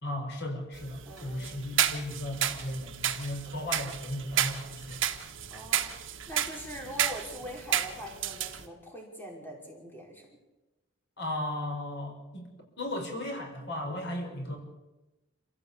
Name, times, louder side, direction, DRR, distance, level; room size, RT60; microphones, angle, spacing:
voice 1, 0.0-5.0 11.2-12.5 12.8-14.6, left 1 dB, 55° left, 3 dB, 5.5 m, -36 dB
sound 1, 0.7-8.6, right 10 dB, 60° right, 1.7 m, -32 dB
voice 2, 1.0-1.6 5.5-10.3, equal, 10° left, -1 dB, 5.4 m, -43 dB
27.5 x 16.0 x 8.5 m, 1.1 s
head